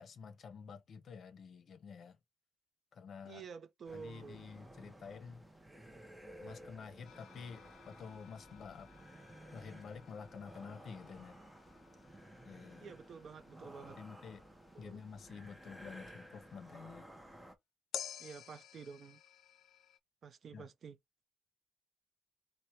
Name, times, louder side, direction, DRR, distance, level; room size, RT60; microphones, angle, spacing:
voice 1, 0.0-2.2 2.9-3.4 3.9-5.4 6.4-8.9 9.5-11.4 12.5-12.9 14.0-14.4 14.8-17.1 20.5-20.7, left 6 dB, 55° left, 0.8 m, -50 dB
voice 2, 3.2-4.4 12.8-14.0 14.7-15.0 18.2-19.2 20.2-21.0, right 6 dB, 50° right, 0.6 m, -50 dB
sound 1, 3.9-17.6, right 1 dB, 5° right, 0.7 m, -55 dB
sound 2, 7.0-16.5 17.9-20.0, left 10 dB, 80° left, 0.4 m, -53 dB
4.2 x 2.2 x 4.4 m
cardioid pair, 140°, 0 cm